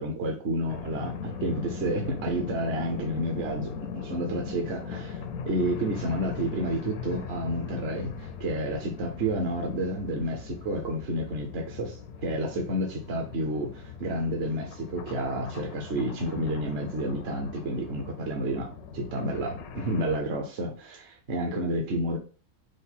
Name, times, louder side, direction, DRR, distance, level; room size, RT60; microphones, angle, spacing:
voice 1, 0.0-22.2, right 1 dB, 55° right, 2 dB, 0.9 m, -30 dB
sound 1, 0.7-20.2, left 6 dB, 85° left, 1.1 m, -40 dB
5.0 x 2.1 x 4.1 m, 0.37 s
omnidirectional pair, 1.5 m